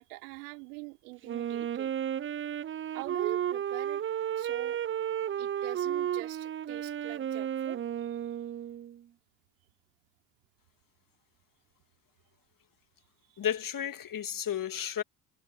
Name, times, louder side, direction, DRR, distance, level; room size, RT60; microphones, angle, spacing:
voice 1, 0.0-1.9 2.9-4.0 4.4-4.8 5.4-8.3, right 28 dB, 70° right, 5.0 m, -43 dB
Wind instrument woodwind instrument, 1.2-9.0, right 10 dB, 25° right, 0.6 m, -33 dB
voice 2, 13.4-15.0, left 9 dB, 40° left, 2.5 m, -32 dB
figure-of-eight pair, 50°, 49 cm